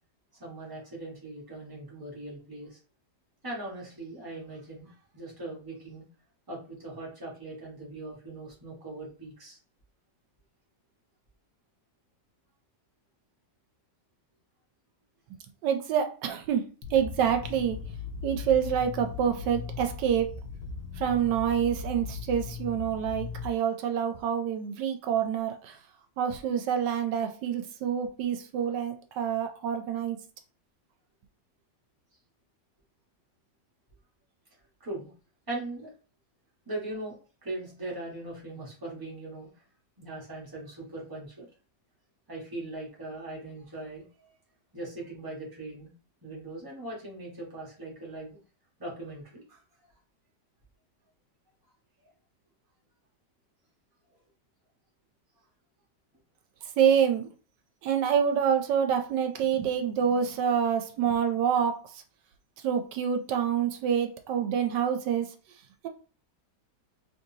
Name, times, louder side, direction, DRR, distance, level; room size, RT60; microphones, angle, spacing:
voice 1, 0.4-2.8 3.4-6.0 6.5-9.6 34.8-35.1 35.5-35.9 36.7-37.2 37.4-39.5 40.0-41.5 42.3-44.3 44.7-45.9 46.2-48.4 48.8-49.6, right 2 dB, 15° right, -4 dB, 1.3 m, -40 dB
voice 2, 15.6-16.6 16.9-17.8 18.2-20.3 21.0-25.7 26.2-30.2 56.8-57.3 57.8-61.8 62.6-65.3, right 8 dB, 85° right, 6 dB, 1.3 m, -27 dB
sound 1, 16.8-23.5, left 6 dB, 75° left, 1.1 m, -38 dB
3.9 x 3.2 x 2.7 m, 0.37 s
omnidirectional pair, 1.8 m